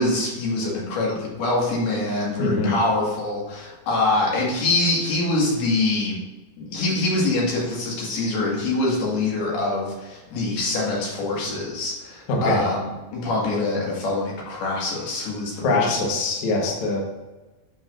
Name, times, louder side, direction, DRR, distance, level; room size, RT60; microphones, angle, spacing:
voice 1, 0.0-6.2 6.6-16.0, left 2 dB, 80° left, -4 dB, 3.7 m, -24 dB
voice 2, 2.4-2.8 12.3-12.6 15.6-17.0, left 2 dB, 65° left, -1 dB, 2.1 m, -23 dB
8.6 x 6.0 x 2.5 m, 1.1 s
omnidirectional pair, 4.4 m